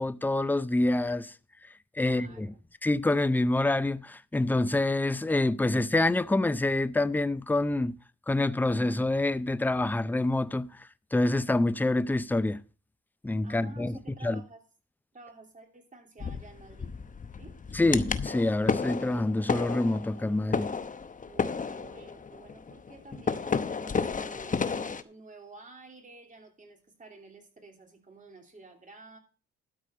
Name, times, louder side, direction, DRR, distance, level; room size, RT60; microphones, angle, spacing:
voice 1, 0.0-1.3 2.0-2.5 2.8-8.0 8.3-10.7 11.1-12.6 13.2-14.4 17.7-20.7, left 2 dB, 5° left, 0.5 m, -26 dB
voice 2, 2.0-2.6 13.4-14.6 15.1-16.9 17.4-17.6 21.2-24.7 25.0-29.2, right 3 dB, 25° right, 3.1 m, -51 dB
sound 1, 16.2-25.0, left 5 dB, 25° left, 0.9 m, -32 dB
12.5 x 4.9 x 7.7 m
cardioid pair, 90°, 30 cm